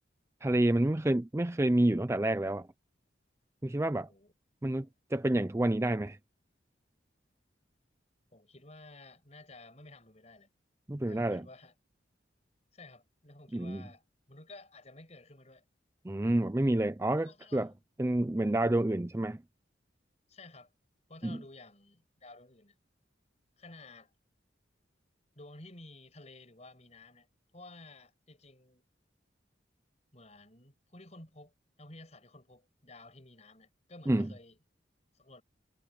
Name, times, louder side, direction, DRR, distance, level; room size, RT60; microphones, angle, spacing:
voice 1, 0.4-2.7 3.6-4.1 4.6-4.9 5.1-6.2 10.9-11.5 13.5-13.8 16.0-17.7 18.0-19.4 21.2-21.4 34.1-34.3, right 1 dB, 15° right, 0.4 m, -28 dB
voice 2, 8.3-10.5 11.0-11.7 12.7-15.6 17.2-17.8 20.3-20.7 21.1-22.8 23.6-24.1 25.4-28.8 30.1-31.5 31.8-34.6 35.1-35.4, left 2 dB, 35° left, 5.7 m, -53 dB
head